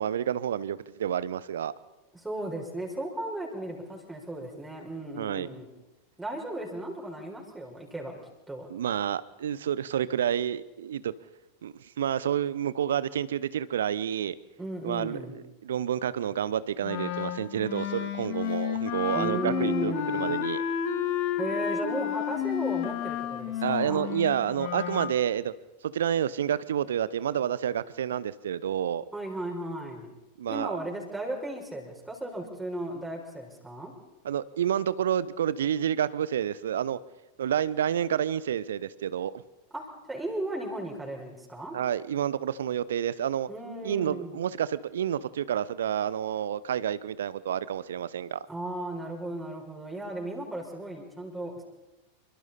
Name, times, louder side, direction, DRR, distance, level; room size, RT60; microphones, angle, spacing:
voice 1, 0.0-1.7 5.2-5.5 8.7-11.1 11.6-14.3 14.8-20.6 23.6-25.5 25.8-29.0 30.4-30.8 34.2-37.0 37.4-39.4 41.7-43.5 43.8-48.4, right 9 dB, 60° right, 18 dB, 0.9 m, -29 dB
voice 2, 2.1-5.7 6.2-8.2 8.5-8.7 14.6-15.3 19.1-20.3 21.4-24.1 29.1-30.1 30.5-33.9 39.7-41.8 43.5-44.4 48.5-51.6, right 1 dB, 5° right, -2 dB, 4.8 m, -35 dB
Wind instrument woodwind instrument, 16.8-25.1, left 10 dB, 45° left, 1.9 m, -31 dB
27.5 x 24.5 x 4.2 m, 1.0 s
figure-of-eight pair, 90°, 0 cm